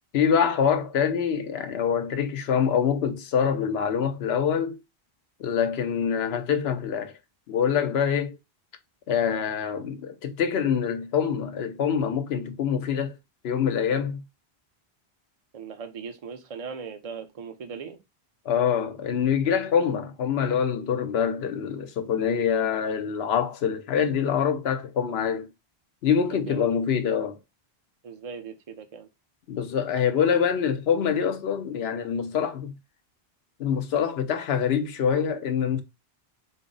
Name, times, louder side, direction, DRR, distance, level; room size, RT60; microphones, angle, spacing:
voice 1, 0.1-4.8 5.4-7.1 7.5-8.4 9.1-13.2 13.4-14.2 18.5-25.5 26.0-27.4 29.5-32.7 33.6-35.8, left 7 dB, 80° left, 0.9 m, -25 dB
voice 2, 15.5-18.0 26.3-26.6 28.0-29.1, right 5 dB, 40° right, 0.6 m, -39 dB
4.0 x 2.0 x 3.8 m
omnidirectional pair, 1.1 m